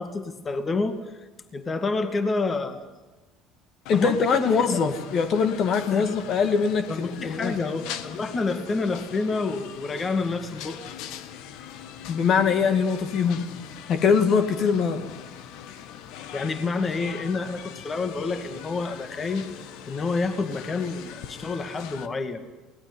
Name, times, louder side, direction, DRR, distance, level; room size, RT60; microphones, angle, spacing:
voice 1, 0.0-2.8 3.9-4.9 5.9-6.1 6.9-10.8 16.3-19.5 19.9-22.4, left 3 dB, 25° left, 9 dB, 2.1 m, -28 dB
sound 1, 3.9-22.1, left 9 dB, 75° left, 1.6 m, -41 dB
voice 2, 3.9-7.6 12.1-13.5 13.9-15.1, left 5 dB, 50° left, 9 dB, 2.1 m, -22 dB
23.5 x 18.0 x 9.7 m, 1.1 s
cardioid pair, 115°, 0 cm